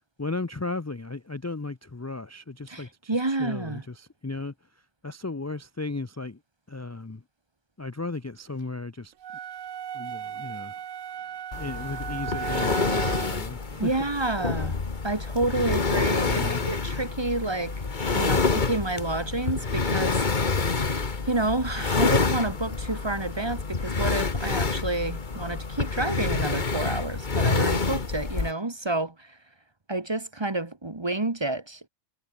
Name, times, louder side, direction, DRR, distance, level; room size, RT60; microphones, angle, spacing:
voice 1, 0.2-4.5 5.0-6.4 6.7-7.2 7.8-9.1 9.9-10.8 11.2-11.3 11.6-14.1 16.2-16.6, left 3 dB, 20° left, 0.4 m, -35 dB
voice 2, 2.7-3.8 13.8-14.8 15.0-17.8 18.1-20.7 21.2-29.4 29.9-31.9, right 2 dB, 20° right, 1.3 m, -29 dB
sound 1, 9.2-13.5, right 9 dB, 90° right, 1.4 m, -36 dB
sound 2, 11.5-28.5, left 4 dB, 40° left, 1.7 m, -27 dB
omnidirectional pair, 1.3 m